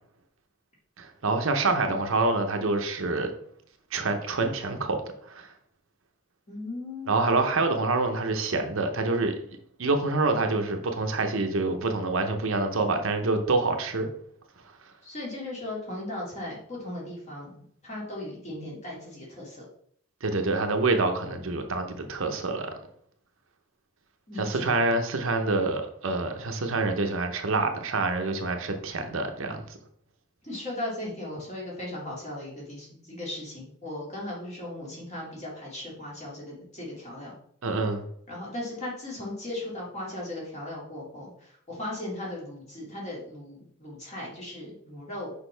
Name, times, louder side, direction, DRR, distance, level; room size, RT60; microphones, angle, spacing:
voice 1, 1.0-3.3 3.9-5.0 5.2-5.5 7.1-9.4 9.8-14.1 20.2-22.7 24.4-29.7 37.6-38.0, right 3 dB, 65° right, 5 dB, 0.8 m, -26 dB
voice 2, 6.5-7.1 15.0-17.5 17.8-19.7 24.3-24.7 30.4-37.4 38.3-45.3, left 1 dB, 30° left, -4 dB, 2.3 m, -37 dB
6.3 x 5.1 x 3.3 m, 0.65 s
head